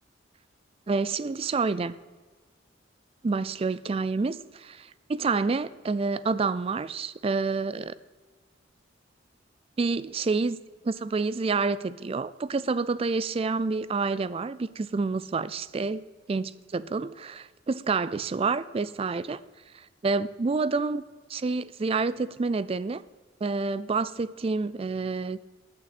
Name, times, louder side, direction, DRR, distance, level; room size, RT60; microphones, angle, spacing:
voice 1, 0.9-1.9 3.2-7.9 9.8-10.6 10.8-16.0 16.3-19.4 20.0-21.0 21.3-23.0 23.4-25.4, right 4 dB, 30° right, 17 dB, 0.3 m, -28 dB
15.0 x 8.5 x 4.2 m, 1.4 s
head